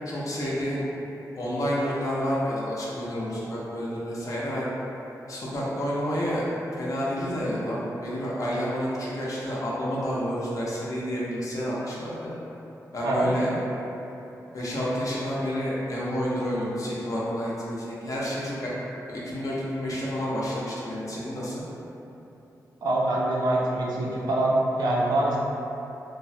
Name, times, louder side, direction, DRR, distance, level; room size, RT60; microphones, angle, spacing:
voice 1, 0.1-0.9 1.3-4.7 5.3-6.5 6.8-12.3 12.9-13.5 14.5-18.7 19.1-21.6, equal, 55° left, -7 dB, 0.7 m, -29 dB
voice 2, 22.8-25.4, right 1 dB, 80° right, -5 dB, 0.5 m, -24 dB
3.1 x 2.1 x 2.6 m, 3.0 s
cardioid pair, 80°, 7 cm